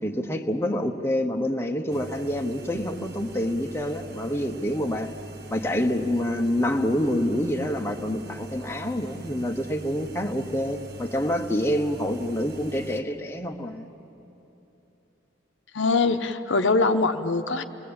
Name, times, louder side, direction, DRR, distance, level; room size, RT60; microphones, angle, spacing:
voice 1, 0.0-5.1 5.5-13.9, left 1 dB, 15° left, 3 dB, 1.0 m, -27 dB
sound 1, 1.9-13.0, right 1 dB, 55° right, 1.2 m, -42 dB
voice 2, 15.7-17.6, left 3 dB, 70° left, 7 dB, 0.9 m, -23 dB
29.0 x 20.0 x 8.7 m, 3.0 s
head